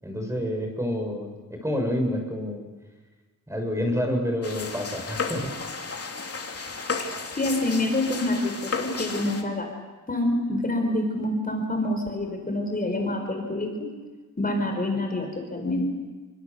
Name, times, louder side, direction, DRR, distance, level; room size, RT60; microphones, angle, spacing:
voice 1, 0.0-2.6 3.5-5.5, equal, 10° right, 3 dB, 6.3 m, -28 dB
sound 1, 4.4-9.4, left 4 dB, 45° left, 3.2 m, -33 dB
voice 2, 7.4-9.7 10.1-13.9 14.4-15.9, left 1 dB, 25° left, 3 dB, 4.4 m, -27 dB
28.5 x 24.5 x 6.9 m, 1.3 s
wide cardioid pair, 90°, 32 cm